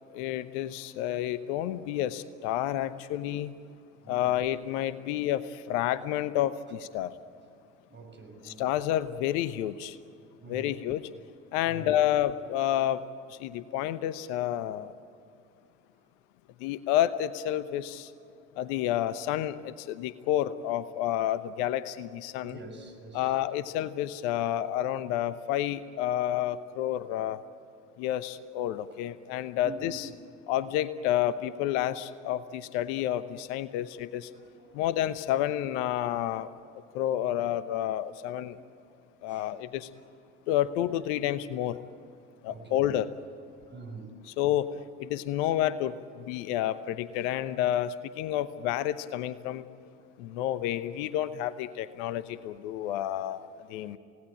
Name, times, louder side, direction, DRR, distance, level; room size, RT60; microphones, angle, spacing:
voice 1, 0.1-3.5 4.1-7.1 8.4-10.0 10.5-11.0 11.5-13.0 13.3-14.9 16.6-18.1 18.6-22.6 23.1-27.4 28.0-30.1 30.5-34.3 34.7-36.5 36.9-38.6 39.2-39.9 40.5-41.8 42.4-43.1 44.4-44.7 45.0-49.6 50.2-54.0, left 12 dB, 65° left, 14 dB, 1.1 m, -30 dB
voice 2, 4.0-4.4 7.9-8.6 10.4-10.9 11.6-11.9 22.4-23.4 29.6-30.1 34.3-34.9 38.5-38.6 39.3-39.5 40.0-40.1 42.4-42.9 43.7-44.1 47.3-47.5 52.3-52.4, right 3 dB, 30° right, 4 dB, 5.9 m, -46 dB
28.0 x 18.5 x 8.9 m, 2.5 s
hypercardioid pair, 60°, 37 cm